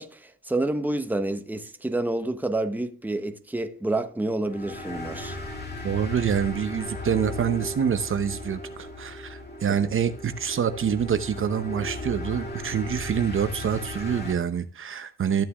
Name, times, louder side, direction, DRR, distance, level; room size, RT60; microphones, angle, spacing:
voice 1, 0.0-5.4 9.7-9.9, right 2 dB, 5° right, 1.0 m, -29 dB
sound 1, 4.5-14.3, left 2 dB, 35° left, 2.6 m, -36 dB
voice 2, 5.8-15.4, right 8 dB, 45° right, 0.8 m, -26 dB
13.5 x 6.7 x 2.4 m
cardioid pair, 90°, 30 cm